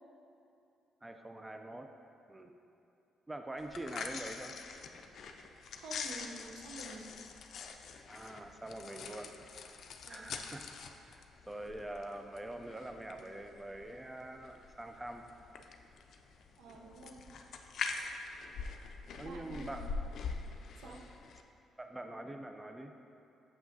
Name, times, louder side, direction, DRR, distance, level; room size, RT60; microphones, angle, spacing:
voice 1, 1.0-1.9 2.3-2.5 3.3-4.6 8.1-9.4 10.1-10.7 11.0-15.3 19.2-19.9 20.8-21.0 21.8-22.9, right 1 dB, 15° right, 5 dB, 0.3 m, -44 dB
sound 1, 3.6-21.4, left 5 dB, 65° left, 0.4 m, -45 dB
voice 2, 5.7-7.1 10.1-10.3 16.6-17.2 19.2-19.9 20.8-21.0, right 2 dB, 85° right, 1 dB, 0.6 m, -49 dB
7.1 x 5.7 x 2.6 m, 2.8 s
cardioid pair, 90°, 0 cm